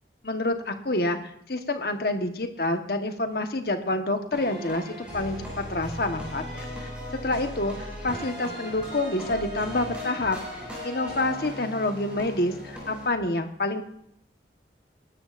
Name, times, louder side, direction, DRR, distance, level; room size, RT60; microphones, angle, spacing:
voice 1, 0.2-6.7 7.2-10.4 10.8-13.8, left 2 dB, 60° left, 6 dB, 1.2 m, -28 dB
sound 1, 4.3-13.1, equal, 5° right, 6.7 m, -37 dB
22.5 x 12.5 x 2.6 m, 0.71 s
head